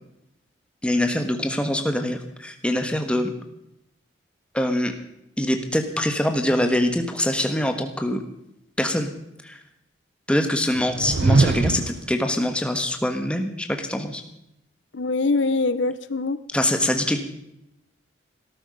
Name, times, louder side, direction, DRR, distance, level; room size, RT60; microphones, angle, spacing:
voice 1, 0.8-3.3 4.5-4.9 5.4-8.2 8.8-9.1 9.4-9.6 10.3-14.2 16.5-17.2, left 1 dB, 5° left, 6 dB, 1.5 m, -24 dB
sound 1, 10.8-12.1, right 3 dB, 65° right, 0.6 m, -21 dB
voice 2, 14.9-16.4, left 3 dB, 75° left, 14 dB, 0.8 m, -23 dB
17.0 x 14.0 x 5.4 m, 0.82 s
head